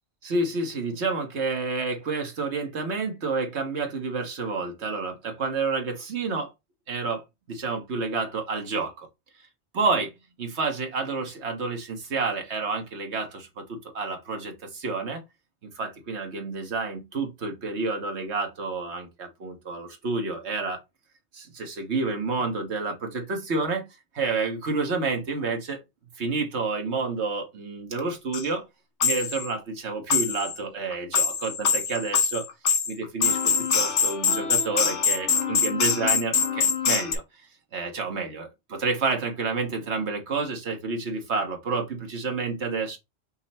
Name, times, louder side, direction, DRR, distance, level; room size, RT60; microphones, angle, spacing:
voice 1, 0.2-6.5 6.9-9.1 9.7-10.1 10.4-15.2 15.6-20.8 21.3-23.8 24.1-25.8 26.2-28.6 29.0-32.5 32.9-37.5 37.7-43.0, right 4 dB, 75° right, 1.5 m, -29 dB
sound 1, 28.0-28.1 28.3-28.4 29.0-29.5 30.1-30.6 30.9-37.2, left 6 dB, 85° left, 1.2 m, -24 dB
5.6 x 2.1 x 4.2 m
omnidirectional pair, 1.2 m